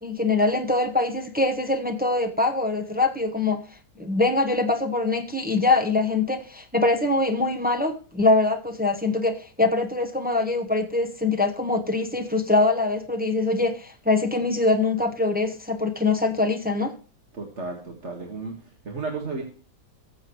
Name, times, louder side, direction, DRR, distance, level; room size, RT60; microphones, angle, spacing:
voice 1, 0.0-3.6 4.0-16.9, left 2 dB, 10° right, 0.4 m, -23 dB
voice 2, 17.3-19.4, right 3 dB, 40° right, 1.9 m, -33 dB
19.5 x 7.4 x 3.1 m
omnidirectional pair, 2.0 m